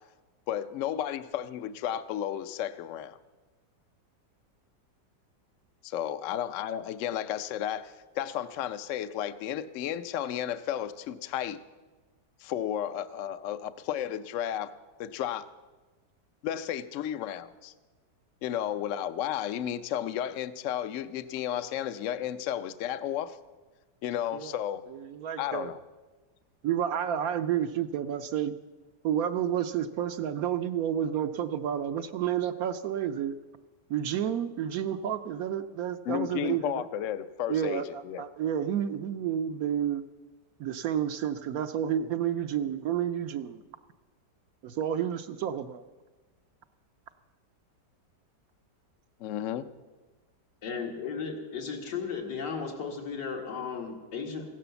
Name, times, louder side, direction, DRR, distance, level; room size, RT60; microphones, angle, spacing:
voice 1, 0.5-3.2 5.8-11.6 12.4-14.7 15.0-15.5 16.4-17.7 18.4-23.4 24.0-24.8 25.4-25.8 36.0-38.2 49.2-49.7, left 10 dB, 60° left, 14 dB, 0.8 m, -33 dB
voice 2, 24.9-25.7 26.6-28.5 29.0-33.3 33.9-36.8 37.5-37.8 38.2-40.0 40.6-43.6 44.6-45.8, right 9 dB, 70° right, 10 dB, 1.0 m, -30 dB
voice 3, 50.6-54.4, left 5 dB, 85° left, 1 dB, 2.7 m, -35 dB
16.0 x 11.0 x 6.9 m, 1.3 s
omnidirectional pair, 1.8 m